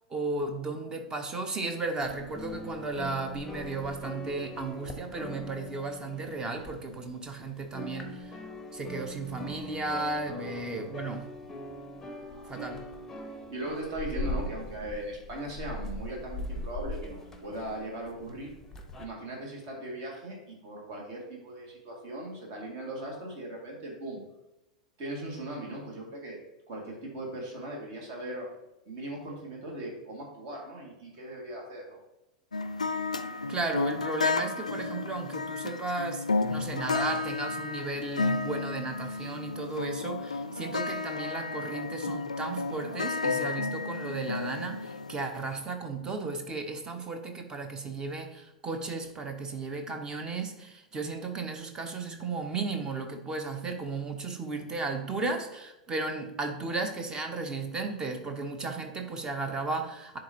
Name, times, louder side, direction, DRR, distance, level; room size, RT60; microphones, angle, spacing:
voice 1, 0.1-8.3 8.7-11.3 12.5-12.8 33.5-36.2 36.5-60.2, right 3 dB, 20° right, 6 dB, 0.9 m, -34 dB
sound 1, 2.0-7.3 7.6-19.0, left 1 dB, 10° left, 0.8 m, -41 dB
voice 2, 13.5-18.6 19.0-24.2 25.0-26.4 26.7-28.5 28.9-32.0 42.9-43.0, right 1 dB, 45° right, -1 dB, 2.1 m, -39 dB
sound 2, 32.5-45.5, left 3 dB, 80° left, 0.4 m, -32 dB
10.5 x 3.9 x 2.9 m, 0.94 s
figure-of-eight pair, 90°, 4 cm